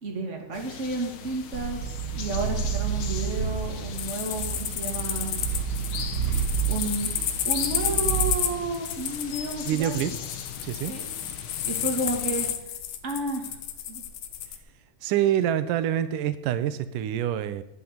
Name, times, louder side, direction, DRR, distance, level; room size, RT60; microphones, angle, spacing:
voice 1, 0.0-5.4 6.7-7.1 7.4-10.0 10.9-11.1 11.6-12.7 13.0-13.6 13.9-14.0, right 2 dB, 25° right, 2 dB, 2.5 m, -32 dB
sound 1, 0.5-12.5, left 7 dB, 55° left, 1.5 m, -40 dB
Purr, 1.5-8.5, right 8 dB, 70° right, 2.9 m, -30 dB
sound 2, 3.9-14.6, left 10 dB, 75° left, 2.4 m, -31 dB
voice 2, 9.7-10.1 10.6-10.9 15.0-17.6, right 11 dB, 90° right, 13 dB, 2.4 m, -26 dB
11.0 x 9.2 x 8.7 m, 0.82 s
omnidirectional pair, 3.6 m